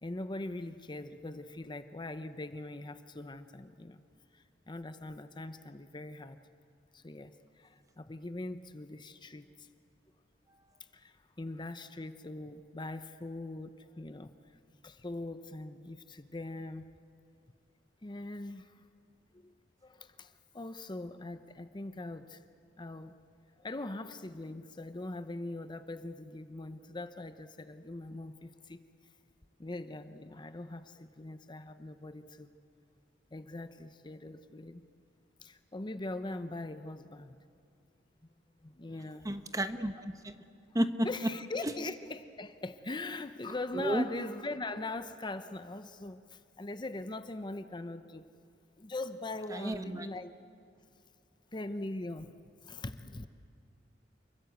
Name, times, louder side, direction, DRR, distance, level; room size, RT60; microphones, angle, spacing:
voice 1, 0.0-4.0 4.3-6.4 6.9-9.7 10.9-14.3 14.8-16.9 18.0-18.7 19.3-19.5 19.8-22.4 22.8-23.2 23.6-28.8 29.6-32.5 33.3-34.8 35.4-37.4 38.6-39.3 41.0-48.3 48.8-50.3 51.5-52.3 52.6-53.3, left 2 dB, 25° left, 10 dB, 0.7 m, -41 dB
voice 2, 39.2-39.9 40.2-40.3 40.7-41.1 43.7-44.0 49.5-50.1, right 1 dB, 20° right, 9 dB, 1.0 m, -31 dB
28.5 x 22.0 x 8.2 m, 2.4 s
head